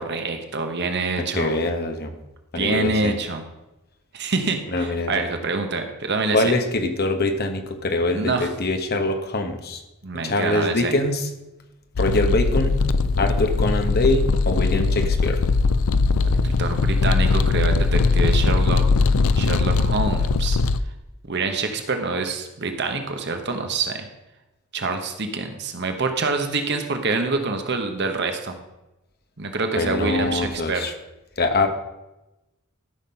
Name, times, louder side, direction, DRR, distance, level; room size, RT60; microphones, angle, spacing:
voice 1, 0.0-1.5 2.5-3.4 4.1-6.4 8.1-8.5 10.0-10.9 16.0-18.9 19.3-20.6 21.2-24.0 24.7-28.6 29.4-30.8, right 3 dB, 50° right, 6 dB, 1.1 m, -26 dB
voice 2, 1.2-2.1 2.5-3.1 4.7-5.2 6.3-9.8 10.2-11.3 12.0-12.9 13.2-15.4 29.7-30.9 31.4-31.7, left 2 dB, 45° left, 6 dB, 1.2 m, -23 dB
sound 1, 12.0-20.8, left 4 dB, 70° left, 0.5 m, -20 dB
13.0 x 5.9 x 5.7 m, 0.97 s
head